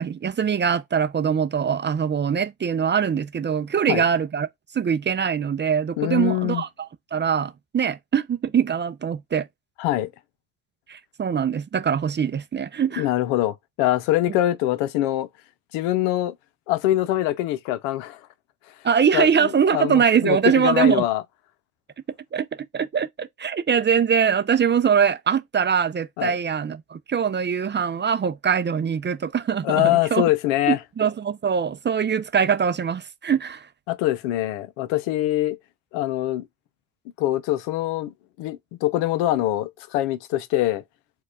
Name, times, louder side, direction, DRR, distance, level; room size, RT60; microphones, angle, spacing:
voice 1, 0.0-4.5 4.7-9.5 10.9-13.1 18.8-21.0 22.3-22.5 22.7-30.2 30.7-33.7, right 7 dB, 25° right, 0.5 m, -22 dB
voice 2, 6.0-6.6 9.8-10.1 13.0-15.3 15.7-16.3 16.7-18.2 19.1-21.2 26.2-26.3 29.6-30.8 33.9-35.6 35.9-36.5 37.2-40.8, left 14 dB, 75° left, 0.7 m, -23 dB
4.6 x 2.3 x 4.6 m
hypercardioid pair, 70°, 46 cm